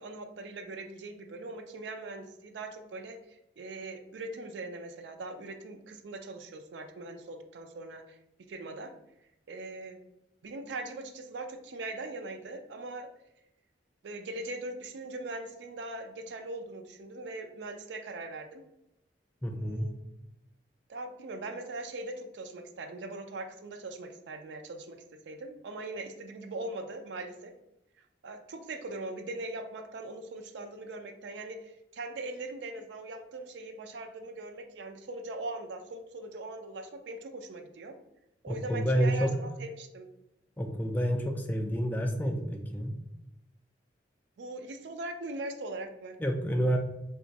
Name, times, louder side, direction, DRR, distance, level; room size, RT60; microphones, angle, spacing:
voice 1, 0.0-8.2 8.5-8.9 9.5-10.0 10.4-13.1 14.0-18.6 19.5-19.9 20.9-27.5 28.2-38.0 38.4-40.1 44.4-46.2, right 2 dB, 75° right, 6 dB, 0.4 m, -41 dB
voice 2, 19.4-20.0 38.5-39.4 40.6-43.0 46.2-46.8, equal, 10° left, 2 dB, 0.3 m, -29 dB
2.5 x 2.4 x 3.9 m, 0.86 s
head